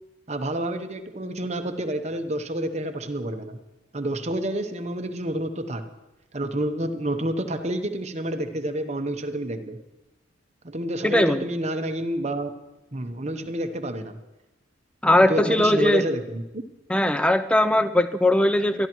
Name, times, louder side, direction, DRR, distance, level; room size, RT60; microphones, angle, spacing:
voice 1, 0.3-3.6 3.9-5.9 6.3-9.8 10.6-12.5 12.9-14.2 15.3-16.6, right 1 dB, 35° right, 7 dB, 0.8 m, -29 dB
voice 2, 11.0-11.4 15.0-16.0 16.9-18.9, left 1 dB, 5° left, 11 dB, 0.4 m, -20 dB
23.0 x 13.5 x 3.1 m, 1.1 s
head